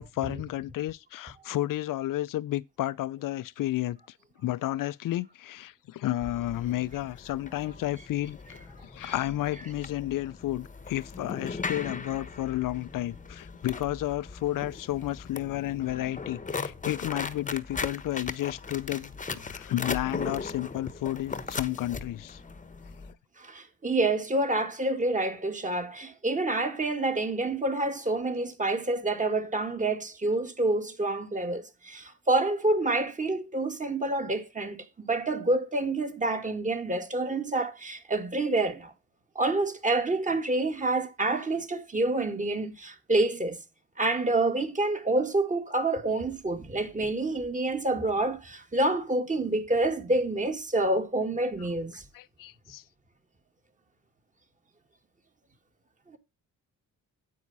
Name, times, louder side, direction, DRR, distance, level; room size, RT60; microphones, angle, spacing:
voice 1, 0.0-4.0 4.4-8.6 8.9-19.2 19.5-22.4 52.1-52.8, left 14 dB, 70° left, 0.7 m, -32 dB
sound 1, 6.2-23.1, left 4 dB, 20° left, 1.1 m, -38 dB
voice 2, 23.4-38.9 39.4-43.6 44.0-52.1 56.1-56.2, right 2 dB, 20° right, 2.0 m, -28 dB
9.5 x 8.6 x 4.1 m
cardioid pair, 110°, 34 cm